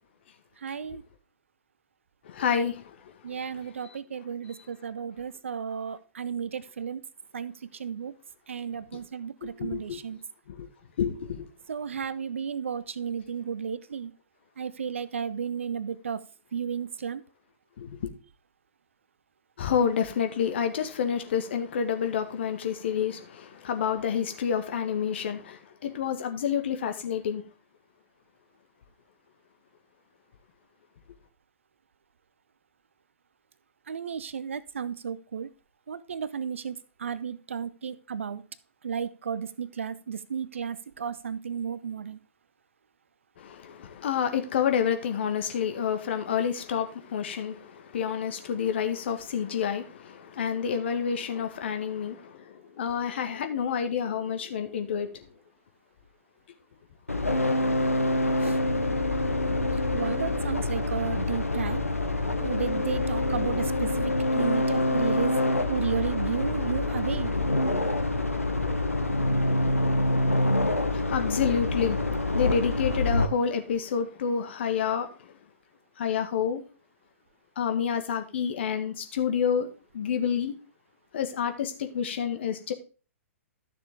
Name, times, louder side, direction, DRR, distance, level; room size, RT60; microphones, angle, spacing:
voice 1, 0.6-1.0 3.2-7.0 7.3-8.1 8.5-10.2 11.7-14.1 14.6-16.2 16.5-17.2 33.9-35.5 35.9-38.4 38.8-42.2 58.4-58.6 59.9-61.8 62.4-65.3 65.7-67.4, right 7 dB, 65° right, 0.7 m, -33 dB
voice 2, 2.2-2.9 9.4-10.0 10.5-10.7 11.0-11.5 17.8-18.1 19.6-27.4 43.4-55.3 70.9-75.3 76.0-76.6 77.6-79.7 79.9-80.5 81.1-82.7, left 7 dB, 50° left, 1.5 m, -29 dB
sound 1, 57.1-73.3, left 2 dB, 85° left, 1.1 m, -26 dB
12.5 x 6.8 x 3.6 m
figure-of-eight pair, 110°, 8 cm